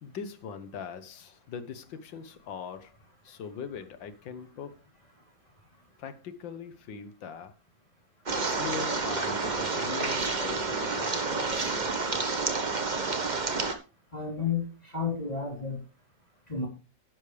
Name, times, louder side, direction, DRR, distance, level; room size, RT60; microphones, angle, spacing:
voice 1, 0.0-3.0 3.2-4.8 6.0-7.5 8.5-11.8, left 6 dB, 75° left, 1.9 m, -41 dB
sound 1, 8.3-13.7, right 3 dB, 30° right, 1.1 m, -29 dB
voice 2, 14.1-15.8 16.5-16.7, left 5 dB, 20° left, 3.6 m, -31 dB
11.5 x 10.5 x 3.4 m
omnidirectional pair, 2.0 m